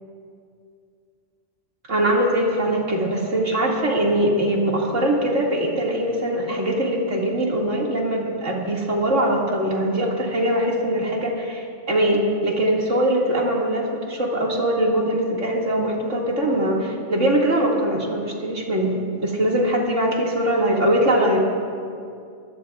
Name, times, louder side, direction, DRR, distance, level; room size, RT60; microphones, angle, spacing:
voice 1, 1.9-21.4, right 1 dB, 80° right, -2 dB, 2.6 m, -22 dB
23.0 x 18.0 x 2.4 m, 2.3 s
omnidirectional pair, 1.2 m